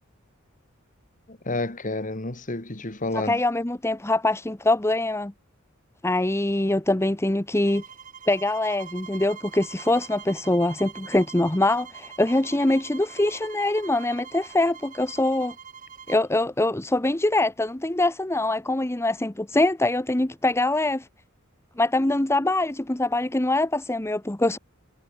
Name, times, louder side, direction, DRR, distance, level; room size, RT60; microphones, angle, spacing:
voice 1, 1.3-3.4, left 2 dB, 40° left, 2.2 m, -30 dB
voice 2, 3.1-5.3 6.0-7.8 8.3-15.5 16.1-21.1 21.8-24.6, left 2 dB, 10° left, 0.9 m, -23 dB
sound 1, 7.6-16.3, right 7 dB, 40° right, 2.9 m, -44 dB
head